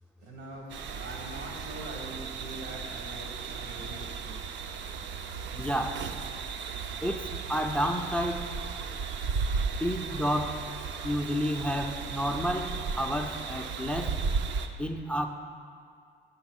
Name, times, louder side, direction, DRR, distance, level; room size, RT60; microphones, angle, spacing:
voice 1, 0.2-4.4 4.8-4.9, right 1 dB, 85° right, -1 dB, 1.4 m, -43 dB
sound 1, 0.7-14.7, right 5 dB, 70° right, 0.4 m, -35 dB
voice 2, 5.5-6.0 7.0-8.5 9.8-10.6 11.0-14.2 14.8-15.3, equal, 5° left, 5 dB, 0.3 m, -30 dB
5.6 x 3.9 x 6.1 m, 2.2 s
cardioid pair, 90°, 20 cm